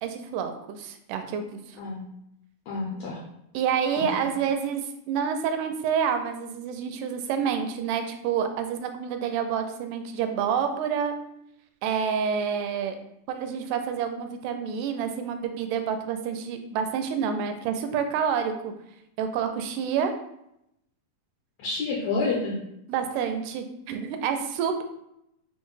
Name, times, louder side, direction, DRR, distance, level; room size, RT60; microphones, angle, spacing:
voice 1, 0.0-1.8 3.5-11.1 11.8-13.0 13.3-18.7 19.2-20.1 22.9-24.8, right 7 dB, 80° right, 7 dB, 2.0 m, -28 dB
voice 2, 2.7-3.2 4.2-4.3 21.6-22.6, left 3 dB, 80° left, -2 dB, 1.6 m, -29 dB
6.0 x 2.2 x 3.1 m, 0.80 s
omnidirectional pair, 3.8 m